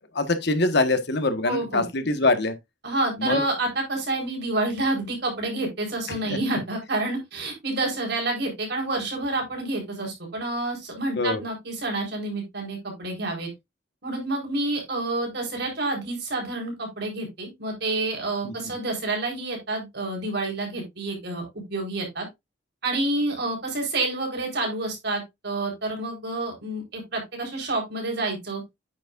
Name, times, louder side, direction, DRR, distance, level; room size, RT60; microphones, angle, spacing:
voice 1, 0.1-2.5 3.2-3.4 6.3-6.4 11.2-11.4 18.4-18.7, left 2 dB, 65° left, 1.4 m, -23 dB
voice 2, 1.4-1.8 2.8-13.5 14.0-21.4 21.7-22.3 22.8-28.6, right 2 dB, 65° right, 4.3 m, -28 dB
9.0 x 7.1 x 2.5 m
head